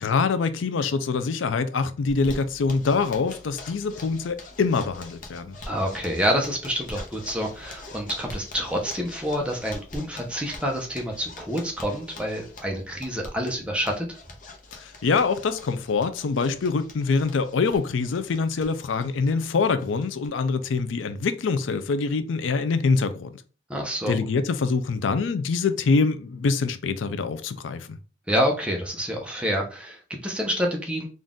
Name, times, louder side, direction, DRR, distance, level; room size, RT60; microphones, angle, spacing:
voice 1, 0.0-5.6 14.7-23.3 24.1-28.0, left 4 dB, 85° left, 0.4 m, -25 dB
Zipper (clothing), 2.1-20.3 20.6-20.7 21.0-21.1 21.4-21.9, left 2 dB, 45° left, 0.8 m, -44 dB
voice 2, 5.7-14.1 23.7-24.2 28.3-31.1, equal, 5° right, 0.7 m, -27 dB
3.9 x 2.5 x 3.6 m
head